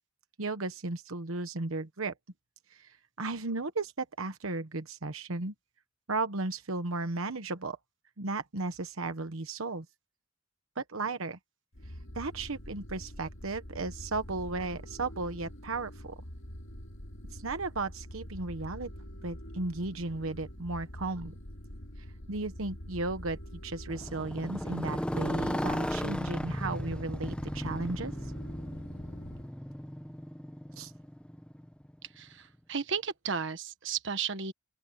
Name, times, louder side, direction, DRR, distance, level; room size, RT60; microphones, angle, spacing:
voice 1, 0.4-2.1 2.7-5.5 6.1-7.8 8.2-9.9 10.8-11.4 12.1-16.1 17.3-18.9 19.2-21.3 22.3-28.1 30.8-30.9, right 3 dB, 85° right, 1.2 m, -35 dB
sound 1, 11.7-29.5, equal, 70° left, 2.5 m, -45 dB
Motorcycle, 23.9-31.9, equal, 5° left, 1.1 m, -36 dB
voice 2, 32.2-34.5, right 6 dB, 60° right, 1.4 m, -34 dB
open air
head